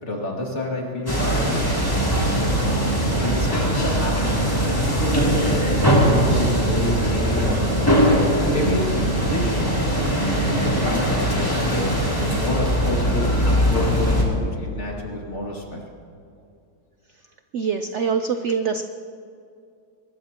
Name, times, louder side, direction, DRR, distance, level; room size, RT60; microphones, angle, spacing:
voice 1, 0.0-2.5 3.2-7.9 8.4-11.9 12.2-13.3 13.6-15.8, left 1 dB, 40° left, -2 dB, 2.6 m, -29 dB
sound 1, 1.1-14.2, equal, 10° left, 2.8 m, -21 dB
sound 2, 2.6-11.0, right 2 dB, 50° right, 1.2 m, -31 dB
voice 2, 17.5-18.8, right 6 dB, 70° right, 8 dB, 0.6 m, -24 dB
22.5 x 20.0 x 2.9 m, 2.5 s
omnidirectional pair, 1.9 m